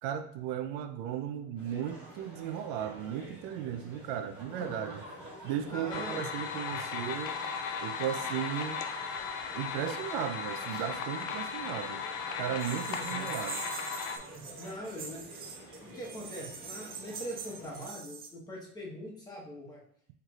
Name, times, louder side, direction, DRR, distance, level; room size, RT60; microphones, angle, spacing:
voice 1, 0.0-5.0 5.4-7.4 7.8-8.8 9.5-12.1 12.4-13.6, right 9 dB, 80° right, 8 dB, 0.5 m, -36 dB
sound 1, 1.6-17.9, right 1 dB, 5° right, 1.6 m, -49 dB
voice 2, 5.7-6.3 12.9-13.4 14.6-15.2 15.8-19.8, equal, 10° left, -4 dB, 1.0 m, -42 dB
sound 2, 5.9-14.2, left 6 dB, 65° left, 0.5 m, -36 dB
sound 3, 12.6-18.3, right 5 dB, 30° right, 0.5 m, -44 dB
5.8 x 3.2 x 2.3 m, 0.64 s
cardioid pair, 165°, 32 cm